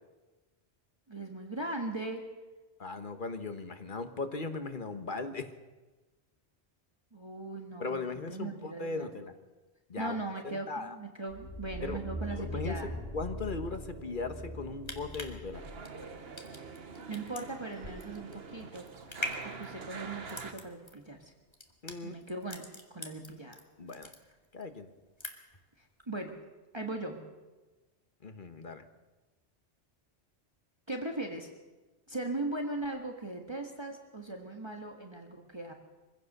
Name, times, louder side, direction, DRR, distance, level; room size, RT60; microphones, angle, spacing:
voice 1, 1.1-2.2 7.1-9.1 10.0-12.9 17.1-18.9 19.4-21.3 22.0-22.6 22.9-23.6 25.8-26.3 26.7-27.2 30.9-31.5 32.1-35.7, right 2 dB, 25° right, 2 dB, 1.7 m, -39 dB
voice 2, 2.8-5.5 7.8-9.3 9.9-10.2 10.4-10.9 11.8-12.0 12.4-12.8 13.1-15.6 21.8-22.1 23.8-24.1 24.5-24.9 28.2-28.8, left 3 dB, 50° left, 8 dB, 1.5 m, -38 dB
sound 1, 11.3-15.7 16.2-16.3, equal, 70° left, 5.2 m, -41 dB
sound 2, 14.8-23.6 23.9-24.7 25.0-25.6 26.0-26.1, left 1 dB, 25° left, 2.0 m, -43 dB
sound 3, 15.5-20.5, right 4 dB, 60° right, 1.5 m, -45 dB
24.0 x 16.0 x 6.7 m, 1.2 s
omnidirectional pair, 1.1 m